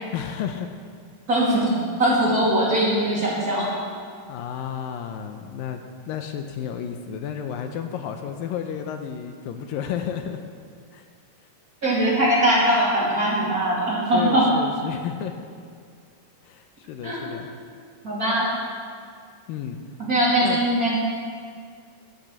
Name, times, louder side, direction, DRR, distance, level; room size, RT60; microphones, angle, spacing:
voice 1, 0.1-0.8 4.3-10.4 10.9-11.1 14.1-15.5 16.4-17.5 19.5-19.8 20.4-20.6, left 8 dB, 80° left, 6 dB, 2.3 m, -32 dB
voice 2, 1.3-3.7 11.8-14.5 17.0-17.3 18.0-18.5 20.1-21.0, right 1 dB, 25° right, -7 dB, 2.7 m, -21 dB
11.5 x 9.3 x 7.3 m, 2.1 s
omnidirectional pair, 4.1 m